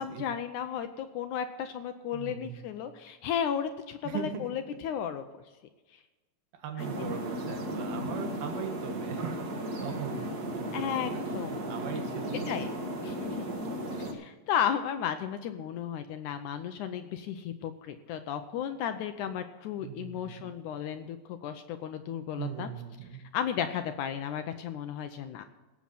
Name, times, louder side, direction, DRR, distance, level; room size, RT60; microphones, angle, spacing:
voice 1, 0.0-5.2 6.8-7.2 10.7-11.6 12.5-12.7 13.0-22.7 23.3-25.4, left 8 dB, 80° left, 8 dB, 1.9 m, -34 dB
voice 2, 2.1-2.6 4.0-4.5 6.5-9.3 9.8-10.2 10.8-12.5 19.8-20.4 22.4-23.2, right 8 dB, 90° right, 5 dB, 3.4 m, -39 dB
sound 1, 6.8-14.1, right 1 dB, 50° right, 1.1 m, -35 dB
17.5 x 7.5 x 5.8 m, 1.2 s
omnidirectional pair, 4.1 m